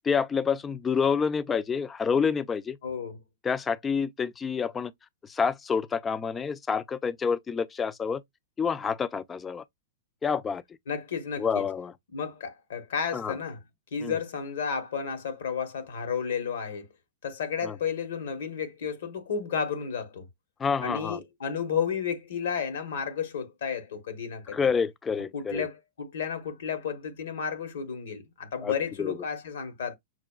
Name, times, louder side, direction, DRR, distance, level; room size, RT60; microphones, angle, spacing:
voice 1, 0.0-2.8 3.4-4.9 5.2-8.2 8.6-9.6 10.2-10.6 11.4-11.9 13.1-13.4 14.0-14.1 17.6-17.8 20.6-21.2 24.5-25.7 28.6-29.2, left 6 dB, 20° left, 0.4 m, -28 dB
voice 2, 2.8-3.2 10.9-11.6 12.1-13.6 13.9-16.9 17.2-20.3 20.8-24.6 25.3-29.9, left 6 dB, 75° left, 1.2 m, -32 dB
5.9 x 2.3 x 2.3 m
hypercardioid pair, 120°, 0 cm